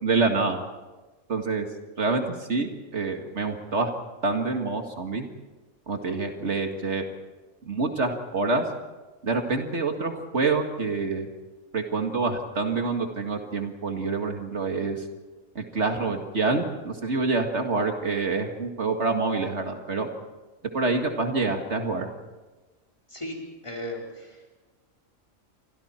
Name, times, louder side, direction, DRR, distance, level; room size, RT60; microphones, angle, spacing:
voice 1, 0.0-0.6 1.3-1.7 2.0-2.2 2.5-3.9 4.2-5.3 5.9-7.0 7.7-8.6 9.2-11.3 11.7-15.0 15.6-20.1 20.7-22.1, right 3 dB, 65° right, 4 dB, 2.2 m, -26 dB
voice 2, 23.6-24.4, left 1 dB, 25° left, -1 dB, 4.5 m, -35 dB
28.5 x 25.0 x 4.4 m, 1.2 s
omnidirectional pair, 1.3 m